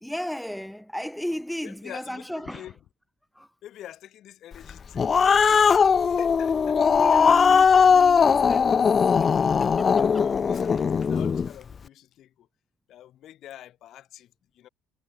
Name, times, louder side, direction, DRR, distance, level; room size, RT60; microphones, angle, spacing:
voice 1, 0.0-2.7 3.3-3.5 6.8-8.8 9.2-10.3, equal, ahead, 1.1 m, -35 dB
voice 2, 1.6-2.7 3.6-7.6 10.0-12.5 12.9-14.3 14.6-14.7, left 12 dB, 60° left, 2.0 m, -46 dB
Growling, 4.7-11.5, left 6 dB, 35° left, 0.4 m, -19 dB
supercardioid pair, 95°, 0 cm